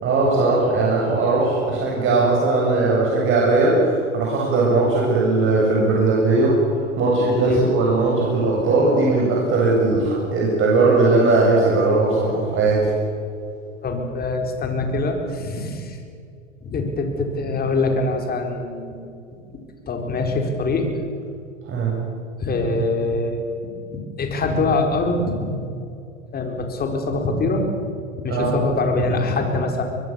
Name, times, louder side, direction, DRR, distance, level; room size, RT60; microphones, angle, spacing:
voice 1, 0.0-12.9 21.7-22.0 28.3-28.6, right 3 dB, 30° right, -4 dB, 7.1 m, -19 dB
voice 2, 13.8-16.0 16.6-19.1 19.9-21.0 22.4-23.4 23.9-25.5 26.3-27.7 28.2-29.8, left 2 dB, 25° left, 4 dB, 4.5 m, -23 dB
23.0 x 22.5 x 7.2 m, 2.5 s
hypercardioid pair, 105°, 37 cm